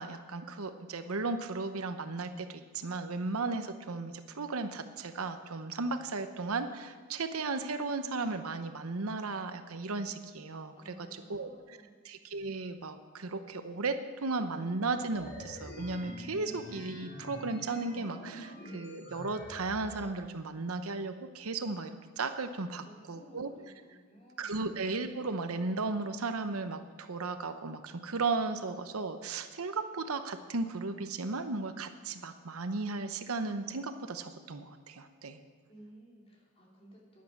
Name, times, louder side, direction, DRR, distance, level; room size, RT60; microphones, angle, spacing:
voice 1, 0.0-11.8 12.0-23.5 24.4-35.4, right 3 dB, 80° right, 9 dB, 0.9 m, -35 dB
voice 2, 10.7-12.0 22.7-24.7 35.7-37.2, right 1 dB, 25° left, -3 dB, 3.1 m, -56 dB
sound 1, 15.1-20.1, left 1 dB, 45° left, 2.8 m, -45 dB
11.0 x 10.5 x 7.2 m, 1.6 s
head